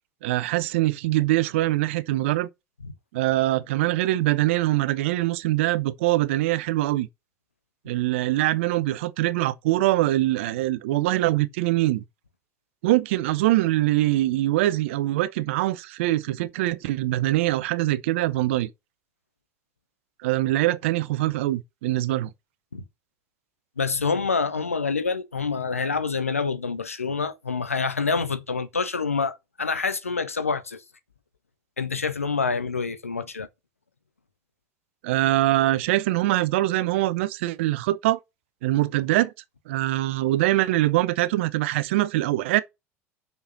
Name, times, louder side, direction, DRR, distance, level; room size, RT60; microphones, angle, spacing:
voice 1, 0.2-2.5 3.1-7.1 7.9-12.0 12.8-18.7 20.2-22.3 35.0-38.2 38.6-39.3 39.7-42.6, right 16 dB, 65° right, 0.6 m, -23 dB
voice 2, 23.8-30.8 31.8-33.5, left 4 dB, 85° left, 0.8 m, -27 dB
5.9 x 5.5 x 6.6 m
figure-of-eight pair, 65°, 7 cm